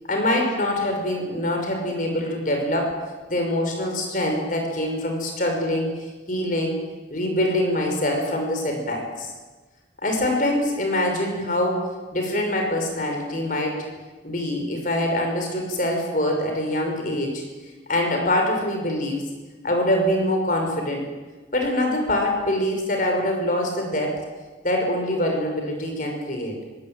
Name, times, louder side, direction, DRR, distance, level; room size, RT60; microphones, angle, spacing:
voice 1, 0.1-2.9 3.3-5.9 6.3-6.8 7.1-9.3 10.0-11.8 12.1-13.8 14.2-17.4 17.9-19.2 19.6-21.1 21.5-24.2 24.6-26.5, left 1 dB, 45° left, 3 dB, 5.6 m, -24 dB
23.5 x 17.0 x 9.3 m, 1.3 s
head